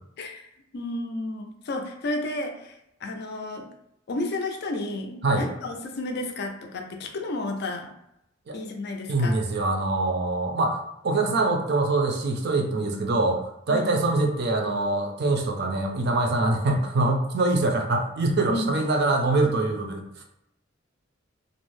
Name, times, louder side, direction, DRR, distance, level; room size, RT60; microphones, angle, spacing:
voice 1, 0.7-3.7 4.1-7.9 8.5-9.4 13.7-14.0 18.5-18.8, left 2 dB, 50° left, 4 dB, 0.4 m, -32 dB
voice 2, 9.1-10.8 11.0-20.2, right 2 dB, 50° right, 3 dB, 0.4 m, -24 dB
2.6 x 2.0 x 3.1 m, 0.81 s
head